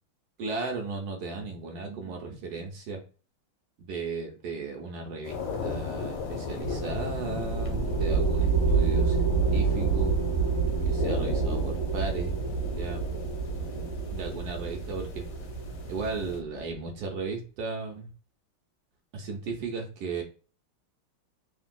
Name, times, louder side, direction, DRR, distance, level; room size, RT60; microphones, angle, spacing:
voice 1, 0.4-3.0 3.8-10.1 10.8-12.4 12.7-13.1 14.1-15.1 15.8-18.1 19.1-20.2, right 3 dB, 70° right, 2 dB, 0.9 m, -36 dB
sound 1, 5.2-16.4, left 4 dB, 85° left, 1.7 m, -37 dB
sound 2, 6.6-16.6, right 5 dB, 45° left, 1.1 m, -28 dB
3.4 x 2.5 x 2.2 m, 0.37 s
omnidirectional pair, 2.3 m